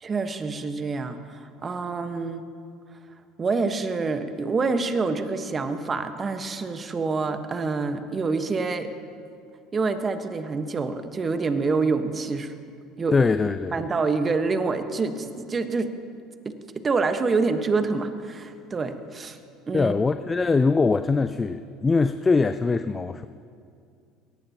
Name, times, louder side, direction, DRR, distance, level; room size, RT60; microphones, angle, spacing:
voice 1, 0.0-2.4 3.4-8.9 9.7-12.5 13.0-13.2 13.7-15.9 16.4-16.5 16.8-19.4 19.7-19.9, right 4 dB, 30° right, 8 dB, 1.3 m, -26 dB
voice 2, 13.1-13.8 19.7-23.3, left 4 dB, 25° left, 11 dB, 0.5 m, -22 dB
23.0 x 18.5 x 3.0 m, 2.4 s
hypercardioid pair, 70°, 0 cm